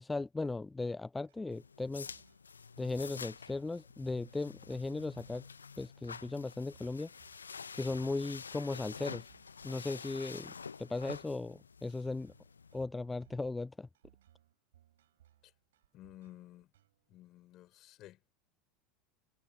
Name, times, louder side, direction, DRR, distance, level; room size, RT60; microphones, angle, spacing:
voice 1, 0.0-2.1 2.8-5.4 5.8-7.1 7.8-9.3 9.6-10.5 10.8-12.3 12.7-13.9, left 3 dB, 10° left, 0.3 m, -37 dB
sound 1, 1.3-17.2, right 12 dB, 70° right, 5.6 m, -67 dB
sound 2, 1.5-12.9, left 5 dB, 80° left, 1.0 m, -49 dB
voice 2, 15.9-16.7 17.1-18.2, left 15 dB, 45° left, 6.8 m, -54 dB
figure-of-eight pair, 80°, 0 cm